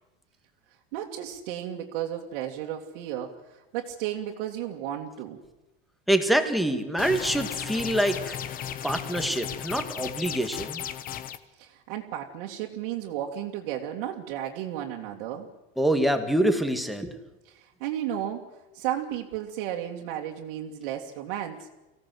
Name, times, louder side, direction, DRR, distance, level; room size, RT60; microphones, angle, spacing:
voice 1, 0.9-5.4 11.6-15.5 17.5-18.5 18.7-21.7, right 11 dB, 65° right, -2 dB, 2.4 m, -33 dB
voice 2, 6.1-8.4 8.8-10.8 15.8-17.2, right 1 dB, ahead, 8 dB, 1.9 m, -25 dB
sound 1, 7.0-11.4, left 9 dB, 30° left, 1.1 m, -35 dB
24.5 x 17.0 x 7.8 m, 1.1 s
supercardioid pair, 150°, 30 cm